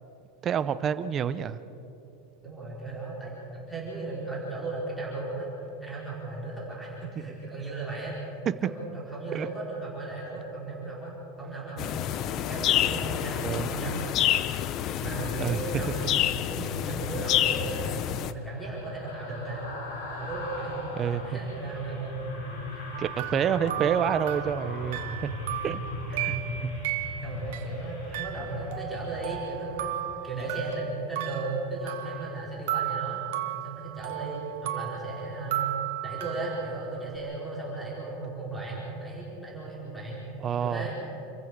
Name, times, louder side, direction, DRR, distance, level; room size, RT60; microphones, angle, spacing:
voice 1, 0.4-1.6 9.3-9.5 13.4-13.7 15.4-15.6 21.0-21.2 23.0-25.0 25.6-25.8 26.1-26.7 40.4-40.9, right 8 dB, 25° right, 13 dB, 0.7 m, -28 dB
voice 2, 2.4-5.5 5.8-8.1 8.6-11.9 12.3-14.0 15.0-16.1 16.5-19.7 20.1-22.3 24.9-29.9 30.2-35.7 36.0-40.2 40.6-40.9, right 2 dB, ahead, -7 dB, 4.6 m, -36 dB
sound 1, 11.8-18.3, left 11 dB, 35° left, 0.7 m, -28 dB
sound 2, 18.2-30.6 30.9-31.1, left 2 dB, 85° left, 6.3 m, -40 dB
Ben Shewmaker - Music Box, 22.9-27.7 28.1-32.4 32.7-37.2, right 13 dB, 70° right, 1.7 m, -35 dB
28.0 x 15.0 x 6.8 m, 3.0 s
supercardioid pair, 165°, 0 cm